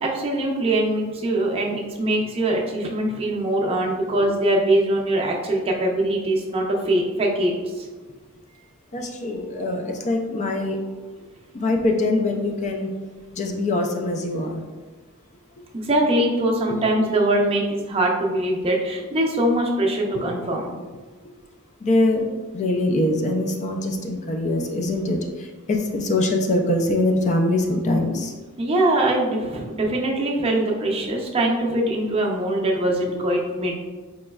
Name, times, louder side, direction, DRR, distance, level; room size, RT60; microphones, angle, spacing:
voice 1, 0.0-7.9 15.8-20.7 28.6-33.8, right 1 dB, 25° right, -1 dB, 0.5 m, -22 dB
voice 2, 8.9-10.8 11.5-12.9 13.3-14.6 21.8-22.3 22.5-28.3, left 2 dB, 35° left, 3 dB, 0.4 m, -23 dB
4.3 x 3.0 x 2.3 m, 1.4 s
head